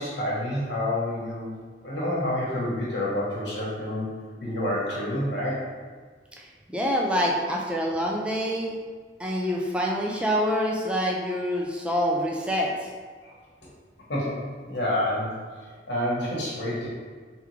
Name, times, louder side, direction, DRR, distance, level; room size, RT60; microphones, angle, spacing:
voice 1, 0.0-5.6 13.2-13.3 14.1-14.4 14.7-15.4 15.9-16.9, left 1 dB, 70° left, -6 dB, 1.1 m, -28 dB
voice 2, 6.4-8.7 9.2-12.9, equal, 5° right, -2 dB, 0.4 m, -26 dB
3.6 x 3.4 x 3.2 m, 1.5 s
head